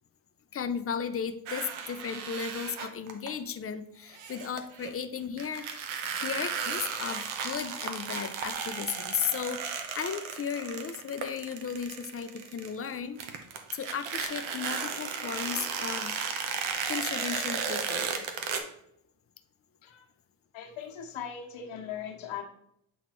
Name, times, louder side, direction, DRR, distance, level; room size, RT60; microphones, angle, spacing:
voice 1, 0.5-5.7 6.1-13.2 13.7-16.2 16.9-18.2, left 7 dB, 30° left, 10 dB, 0.5 m, -35 dB
sound 1, 1.5-3.3 4.1-4.9 5.4-12.9 13.2-18.6, right 6 dB, 90° right, 1.0 m, -34 dB
voice 2, 20.5-22.4, left 8 dB, 75° left, 0 dB, 1.3 m, -39 dB
8.5 x 4.0 x 3.0 m, 0.75 s
cardioid pair, 115°, 47 cm